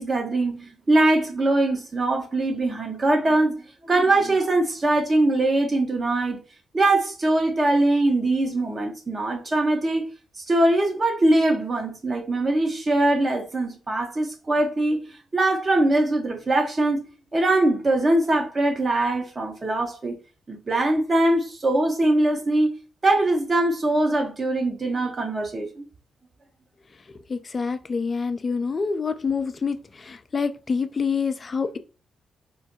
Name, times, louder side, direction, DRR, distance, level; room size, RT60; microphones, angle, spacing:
voice 1, 0.0-6.4 6.7-10.0 10.4-15.0 15.3-20.2 20.5-22.7 23.0-25.9, right 2 dB, 40° right, 1.1 m, -22 dB
voice 2, 27.3-29.8 30.1-31.8, left 5 dB, 45° left, 0.4 m, -26 dB
4.3 x 2.2 x 2.8 m
hypercardioid pair, 45°, 0 cm